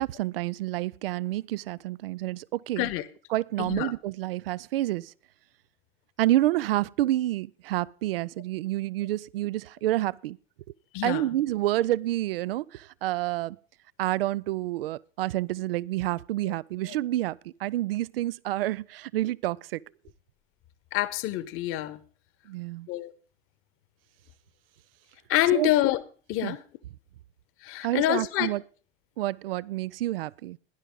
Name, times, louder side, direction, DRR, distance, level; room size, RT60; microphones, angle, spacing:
voice 1, 0.0-2.9 3.3-5.1 6.2-10.4 11.0-13.6 14.0-19.8 22.5-22.9 25.5-25.7 26.4-26.6 27.8-28.6 29.2-30.6, right 15 dB, 65° right, 0.5 m, -28 dB
voice 2, 3.6-3.9 10.9-11.2 16.9-17.0 20.9-22.0 22.9-23.1 25.3-26.0 26.3-26.6 27.6-28.5, left 14 dB, 45° left, 1.2 m, -26 dB
17.0 x 11.0 x 3.8 m
figure-of-eight pair, 80°, 31 cm